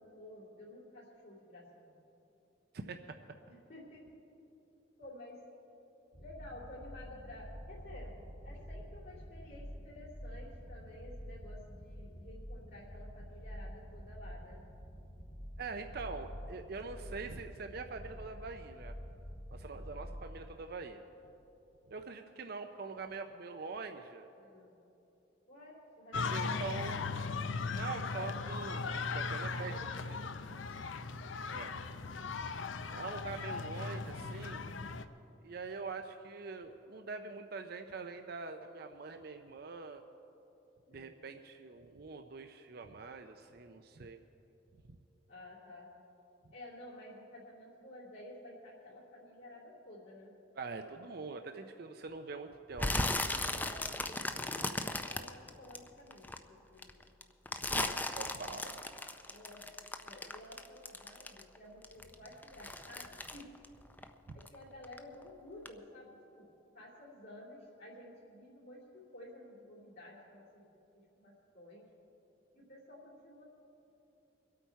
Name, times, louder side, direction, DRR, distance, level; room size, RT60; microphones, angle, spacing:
voice 1, 0.0-2.0 3.5-4.1 5.0-5.4 6.2-8.1 8.4-14.6 19.7-20.0 24.3-24.8 25.5-26.8 29.5-29.8 30.2-30.5 30.9-31.0 40.9-41.2 45.3-45.9 46.5-50.3 53.3-55.3 55.6-57.0 59.3-59.6 60.0-63.5 64.3-66.5 66.7-71.9 72.5-73.4, left 1 dB, 65° left, -8 dB, 2.9 m, -52 dB
voice 2, 2.7-3.2 15.6-18.9 19.5-21.0 21.9-24.3 26.1-27.0 27.7-29.7 31.5-31.7 32.9-34.7 35.4-40.0 40.9-44.2 44.9-45.0 50.6-52.9 57.7-58.9, right 4 dB, 55° right, 6 dB, 0.5 m, -44 dB
sound 1, 6.1-20.5, equal, 45° left, 1.8 m, -48 dB
sound 2, 26.1-35.1, left 4 dB, 85° left, 0.6 m, -38 dB
sound 3, 52.8-56.4 56.8-61.6 61.8-64.5 64.8-65.2 65.6-65.7, left 2 dB, 10° left, 0.4 m, -36 dB
24.0 x 8.5 x 4.6 m, 3.0 s
head